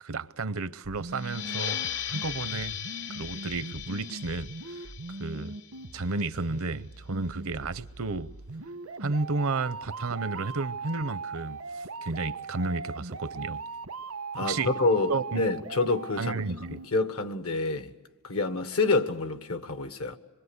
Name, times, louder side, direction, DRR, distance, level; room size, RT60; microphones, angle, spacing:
voice 1, 0.0-1.8 2.1-2.8 3.1-4.9 5.2-5.6 5.9-8.3 9.0-13.6 14.4-14.7 15.1-15.5 16.2-16.8, right 3 dB, 70° right, 0.8 m, -32 dB
sound 1, 0.8-16.9, right 3 dB, 90° right, 1.3 m, -40 dB
sound 2, 1.1-6.4, left 10 dB, 55° left, 0.9 m, -37 dB
voice 2, 14.3-16.4 16.7-17.9 18.2-20.2, left 3 dB, 75° left, 1.6 m, -27 dB
26.5 x 23.5 x 8.2 m
head